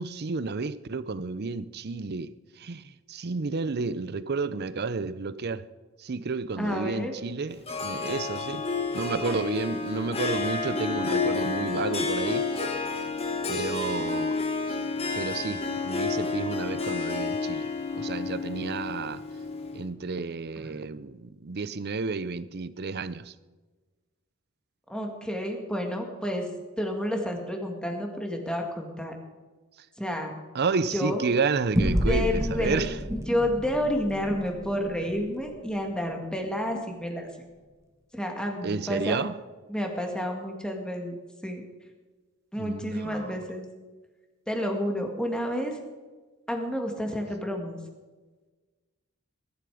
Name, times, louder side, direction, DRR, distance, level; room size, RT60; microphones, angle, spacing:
voice 1, 0.0-5.7 6.0-8.6 8.9-12.7 13.5-14.4 14.7-14.8 15.1-19.2 19.7-23.3 30.5-33.0 38.6-39.4 42.6-43.4, right 4 dB, 50° right, 0.6 m, -31 dB
voice 2, 6.6-7.1 20.6-20.8 24.9-26.5 26.8-29.2 30.0-30.3 30.9-31.2 32.1-32.8 33.3-37.3 38.1-39.2 39.7-41.2 41.4-41.6 42.5-43.7 44.5-45.8 46.5-47.8, equal, 5° left, 2.2 m, -30 dB
Harp, 7.7-19.9, left 4 dB, 30° left, 1.7 m, -30 dB
sound 1, 31.7-36.6, equal, 15° right, 1.4 m, -30 dB
21.0 x 11.5 x 5.0 m
head